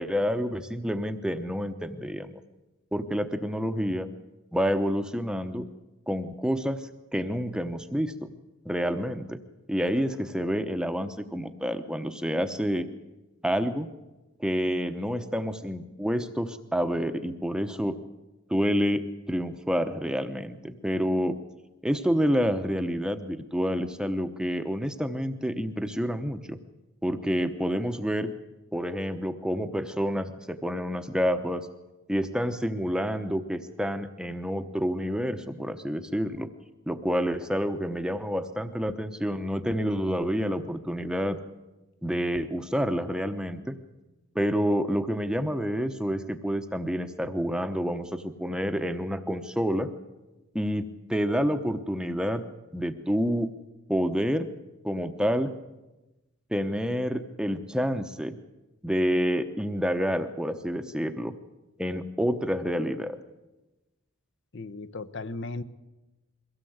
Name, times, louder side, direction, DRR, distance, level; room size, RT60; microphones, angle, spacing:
voice 1, 0.0-2.4 2.9-4.1 4.5-5.7 6.1-8.3 8.6-9.4 9.7-12.9 13.4-13.9 14.4-18.0 18.5-21.4 21.8-26.6 27.0-28.3 28.7-31.7 32.1-36.5 36.9-41.4 42.0-43.7 44.3-49.9 50.5-52.5 52.7-53.5 53.9-54.5 54.8-55.5 56.5-58.4 58.8-61.3 61.8-63.2, equal, 5° right, 8 dB, 0.9 m, -28 dB
voice 2, 64.5-65.6, left 3 dB, 55° left, 13 dB, 0.9 m, -36 dB
23.0 x 17.0 x 8.0 m, 1.1 s
head